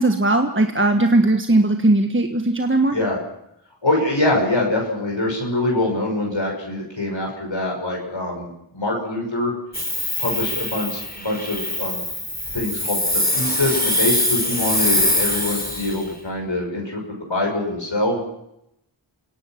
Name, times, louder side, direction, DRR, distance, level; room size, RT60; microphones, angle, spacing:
voice 1, 0.0-2.9, right 2 dB, 25° right, 5 dB, 1.5 m, -18 dB
voice 2, 3.8-9.5 10.2-12.0 12.5-18.2, left 2 dB, 70° left, 0 dB, 6.0 m, -24 dB
Hiss, 9.7-16.0, left 1 dB, 20° left, 4.5 m, -23 dB
28.5 x 17.5 x 5.9 m, 0.81 s
wide cardioid pair, 40°, 46 cm